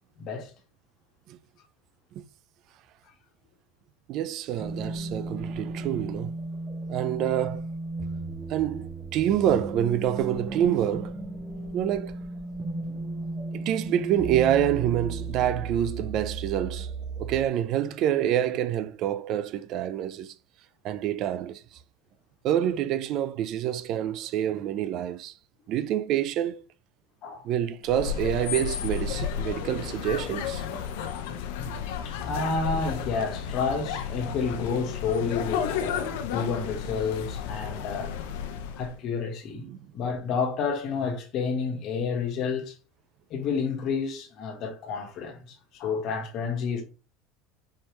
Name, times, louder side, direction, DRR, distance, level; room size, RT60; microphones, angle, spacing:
voice 1, 0.2-0.5 27.2-27.4 31.6-31.8 32.0-38.1 38.7-39.6 39.9-42.7 43.3-46.8, left 5 dB, 50° left, 1.3 m, -30 dB
voice 2, 4.1-6.3 6.9-7.7 8.5-11.1 11.7-12.2 13.5-16.9 17.2-20.3 20.8-21.6 22.4-25.3 25.7-26.6 27.4-30.9 39.5-39.8, right 11 dB, 50° right, 0.4 m, -27 dB
sound 1, 4.6-17.5, right 3 dB, 20° right, 0.7 m, -35 dB
sound 2, 27.8-39.0, left 8 dB, 80° left, 0.7 m, -32 dB
4.5 x 3.3 x 3.0 m
supercardioid pair, 130°, 0 cm